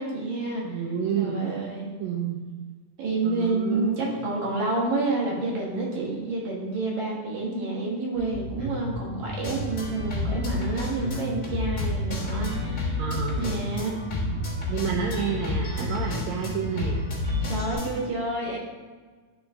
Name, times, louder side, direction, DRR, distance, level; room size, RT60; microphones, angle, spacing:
voice 1, 0.0-0.8 1.1-1.9 3.0-13.0 13.4-14.3 17.5-18.6, right 2 dB, 60° right, -4 dB, 2.7 m, -29 dB
voice 2, 0.6-1.4 2.0-2.4 3.2-4.2 13.0-13.5 14.7-17.0, right 7 dB, 90° right, 0 dB, 1.6 m, -29 dB
Bass guitar, 8.1-17.7, equal, 45° right, 2.5 m, -33 dB
sound 1, 9.4-18.0, left 3 dB, 70° left, 0.7 m, -32 dB
9.9 x 3.9 x 3.5 m, 1.4 s
omnidirectional pair, 4.0 m